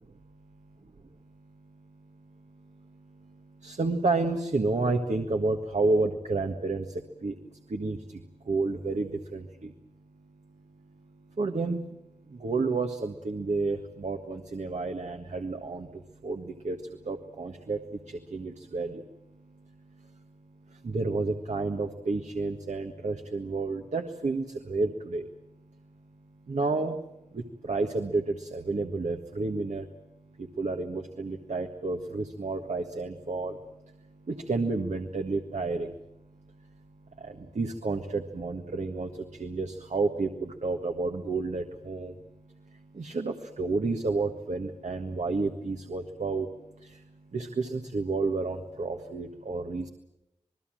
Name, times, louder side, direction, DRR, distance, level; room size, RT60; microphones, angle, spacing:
voice 1, 1.2-9.7 10.5-12.0 12.3-20.3 20.6-25.3 26.5-27.0 27.3-29.9 30.2-36.0 36.3-49.9, right 3 dB, 70° right, 4 dB, 1.6 m, -31 dB
27.0 x 20.5 x 7.7 m, 0.87 s
cardioid pair, 40°, 12 cm